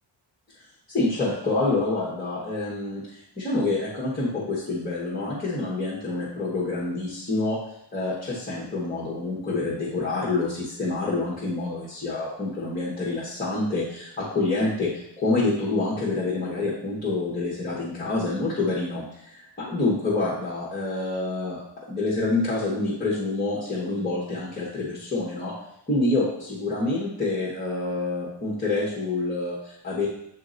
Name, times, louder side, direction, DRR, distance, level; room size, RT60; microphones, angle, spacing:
voice 1, 0.9-7.6 7.9-21.6 21.9-25.5 25.9-30.1, left 2 dB, 20° left, -7 dB, 1.2 m, -27 dB
8.4 x 2.9 x 3.9 m, 0.75 s
wide cardioid pair, 175°, 46 cm